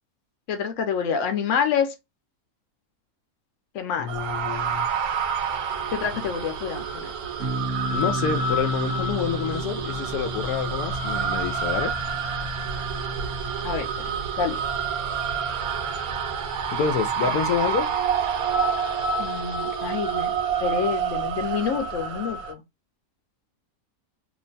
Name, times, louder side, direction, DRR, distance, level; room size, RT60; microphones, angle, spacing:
voice 1, 0.5-1.9 3.7-4.1 5.9-7.1 13.6-13.9 14.4-14.6 17.3-17.4 19.2-20.3 20.6-22.6, left 7 dB, 65° left, 1.0 m, -27 dB
voice 2, 4.0-4.9 6.1-6.2 7.9-11.9 16.7-17.9, left 8 dB, 85° left, 1.0 m, -28 dB
sound 1, 4.1-22.5, right 6 dB, 85° right, 1.1 m, -28 dB
sound 2, 7.4-17.9, right 2 dB, 60° right, 0.9 m, -35 dB
3.0 x 2.2 x 3.9 m
omnidirectional pair, 1.5 m